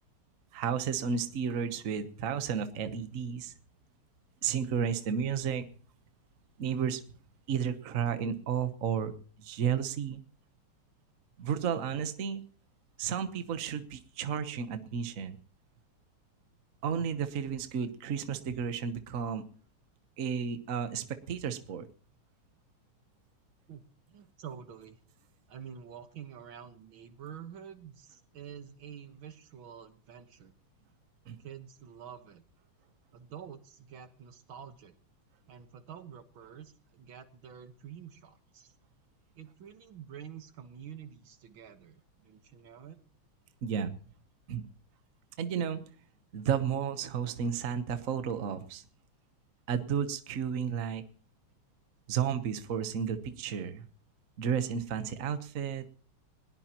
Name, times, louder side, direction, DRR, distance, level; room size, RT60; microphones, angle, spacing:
voice 1, 0.5-3.5 4.4-5.7 6.6-7.0 7.5-9.1 9.4-10.2 11.4-12.4 13.0-15.4 16.8-19.4 20.2-21.9 31.3-31.4 43.6-43.9 44.5-44.6 45.4-45.8 46.3-48.8 49.7-51.0 52.1-53.8 54.4-55.9, right 7 dB, 50° right, 10 dB, 1.2 m, -32 dB
voice 2, 24.1-25.0 25.5-30.5 31.4-32.4 33.1-34.9 35.5-38.7 39.4-43.0, right 8 dB, 75° right, 9 dB, 2.1 m, -48 dB
20.5 x 17.5 x 3.0 m, 0.43 s
omnidirectional pair, 2.3 m